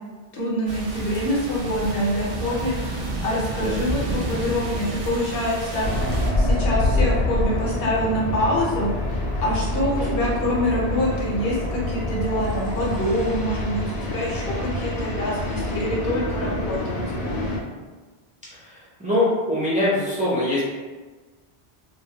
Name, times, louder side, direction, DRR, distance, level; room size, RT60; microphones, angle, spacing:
voice 1, 0.3-5.9 6.3-8.9 9.4-17.4, equal, 65° left, -5 dB, 0.8 m, -25 dB
sound 1, 0.7-6.3, right 2 dB, 65° right, 0.7 m, -30 dB
sound 2, 5.8-17.6, left 1 dB, 90° left, 0.9 m, -26 dB
voice 2, 18.6-20.6, left 1 dB, 10° right, -9 dB, 0.4 m, -23 dB
2.1 x 2.1 x 2.8 m, 1.3 s
omnidirectional pair, 1.1 m